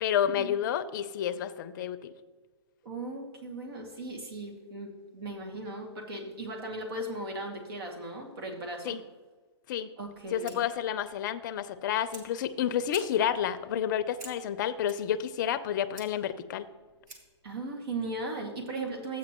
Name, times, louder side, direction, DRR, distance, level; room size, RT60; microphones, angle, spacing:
voice 1, 0.0-2.1 8.8-9.0 9.7-9.9 10.3-16.7, left 9 dB, 45° left, 12 dB, 0.6 m, -30 dB
voice 2, 2.8-9.0 10.0-10.6 17.4-19.2, right 2 dB, 60° right, 1 dB, 2.3 m, -37 dB
Fire, 10.0-17.5, right 2 dB, 40° right, 1.6 m, -52 dB
12.5 x 8.5 x 3.0 m, 1.4 s
hypercardioid pair, 150°, 14 cm